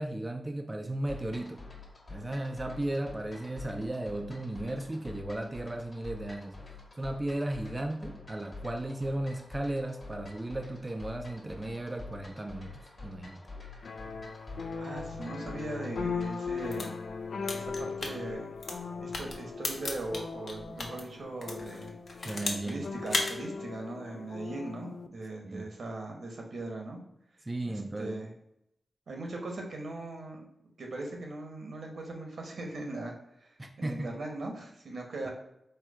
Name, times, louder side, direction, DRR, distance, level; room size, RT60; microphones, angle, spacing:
voice 1, 0.0-1.6 2.1-6.6 7.0-13.4 22.2-22.8 25.4-25.7 27.5-28.2 33.6-34.1, right 1 dB, 20° right, 4 dB, 0.3 m, -35 dB
sound 1, 1.1-17.0, left 3 dB, 40° left, 1.3 m, -47 dB
sound 2, 13.8-25.1, left 5 dB, 85° left, 0.3 m, -39 dB
voice 2, 14.8-16.9 17.5-18.5 19.0-21.9 22.6-27.0 27.6-28.3 29.1-30.5 30.8-33.1 33.4-33.5 33.8-35.3, right 2 dB, 75° right, 1 dB, 1.0 m, -39 dB
sound 3, 16.5-21.0 21.4-22.7 23.0-23.3, left 2 dB, 55° left, 0.8 m, -35 dB
4.4 x 2.2 x 4.7 m, 0.80 s
wide cardioid pair, 130°, 0 cm